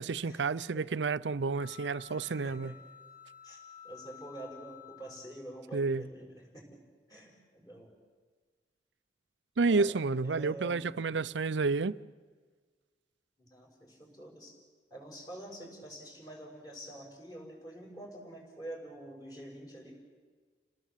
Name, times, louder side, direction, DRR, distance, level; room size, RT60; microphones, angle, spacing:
voice 1, 0.0-2.7 5.7-6.0 9.6-11.9, right 4 dB, 90° right, 0.6 m, -30 dB
sound 1, 1.5-5.6, left 10 dB, 50° left, 2.5 m, -52 dB
voice 2, 2.1-2.7 3.4-6.8 7.1-8.0 9.7-10.0 10.2-10.9 13.4-14.6 14.9-20.0, right 1 dB, 20° left, 5.9 m, -47 dB
29.5 x 18.5 x 7.5 m
head